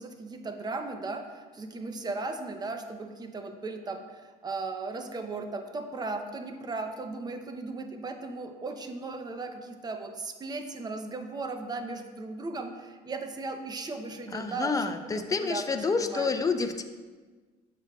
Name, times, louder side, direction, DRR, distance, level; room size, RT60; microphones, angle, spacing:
voice 1, 0.0-16.3, right 3 dB, 25° right, 6 dB, 0.7 m, -37 dB
voice 2, 14.3-16.8, left 4 dB, 20° left, 8 dB, 0.5 m, -28 dB
8.2 x 6.4 x 2.3 m, 1.4 s
cardioid pair, 105°, 17 cm